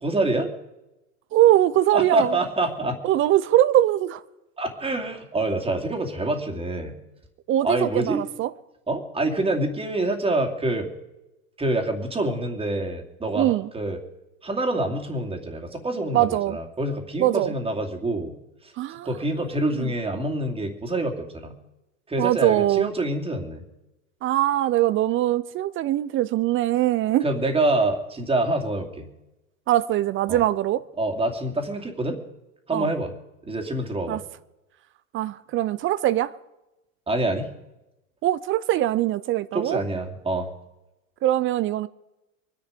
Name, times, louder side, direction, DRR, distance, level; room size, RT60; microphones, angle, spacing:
voice 1, 0.0-0.5 1.9-3.0 4.6-6.9 7.6-8.2 8.9-10.9 11.6-14.0 14.4-18.3 19.0-21.5 22.1-23.6 27.2-29.1 30.3-30.4 31.0-32.2 32.7-33.1 33.4-34.2 37.1-37.5 39.5-40.5, right 2 dB, 15° right, 2.6 m, -26 dB
voice 2, 1.3-2.3 3.0-4.2 7.5-8.5 13.4-13.7 16.1-16.6 17.2-17.5 18.8-19.1 19.7-19.9 22.2-22.9 24.2-27.2 29.7-30.8 32.7-32.9 34.1-34.2 35.1-36.3 38.2-39.8 41.2-41.9, right 13 dB, 30° right, 0.5 m, -22 dB
23.5 x 10.5 x 5.1 m
hypercardioid pair, 110°, 41 cm